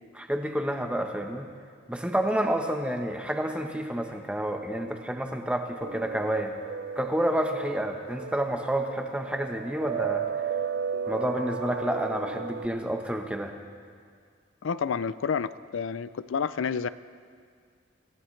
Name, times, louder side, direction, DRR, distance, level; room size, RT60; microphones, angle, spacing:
voice 1, 0.1-1.5 1.9-6.6 7.0-10.2 11.1-13.6, right 1 dB, 5° right, 3 dB, 1.0 m, -29 dB
sound 1, 5.8-12.7, right 6 dB, 50° right, 0.6 m, -34 dB
voice 2, 14.6-16.9, left 6 dB, 75° left, 15 dB, 0.4 m, -29 dB
27.0 x 15.5 x 3.3 m, 2.1 s
head